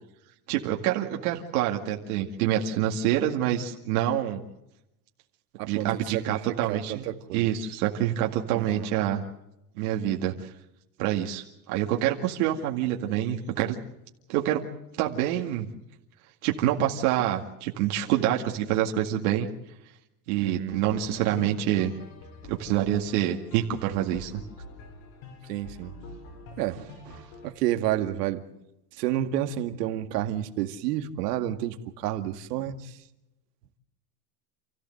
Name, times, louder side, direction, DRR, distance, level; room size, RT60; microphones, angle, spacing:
voice 1, 0.5-4.4 5.7-7.1 7.3-9.2 9.8-10.5 11.0-13.8 14.3-14.6 15.0-15.7 16.4-19.5 20.3-21.9 22.5-24.4, right 11 dB, 65° right, 2.2 m, -26 dB
voice 2, 5.6-7.6 8.5-8.9 20.4-20.8 25.4-26.2 26.6-28.5 28.9-33.0, right 12 dB, 80° right, 2.1 m, -31 dB
sound 1, 20.7-27.5, left 3 dB, 70° left, 7.3 m, -46 dB
29.0 x 15.0 x 7.8 m
supercardioid pair, 165°, 48 cm